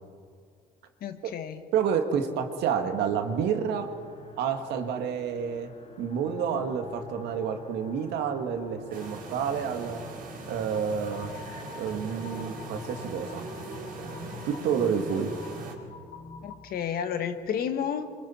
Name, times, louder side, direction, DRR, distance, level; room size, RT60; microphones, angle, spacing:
voice 1, 1.0-1.6 16.4-18.1, left 8 dB, 60° left, 8 dB, 1.6 m, -31 dB
voice 2, 1.7-3.9 4.4-5.7 6.0-10.0 10.5-11.3 11.7-13.4 14.5-15.3, right 7 dB, 80° right, 6 dB, 1.8 m, -29 dB
sound 1, 2.6-15.9, left 4 dB, 35° left, 2.7 m, -48 dB
sound 2, 6.1-16.5, left 4 dB, 85° left, 2.5 m, -47 dB
sound 3, 8.9-15.7, right 4 dB, 55° right, 4.4 m, -41 dB
25.5 x 23.0 x 4.4 m, 2.1 s
cardioid pair, 110°, 17 cm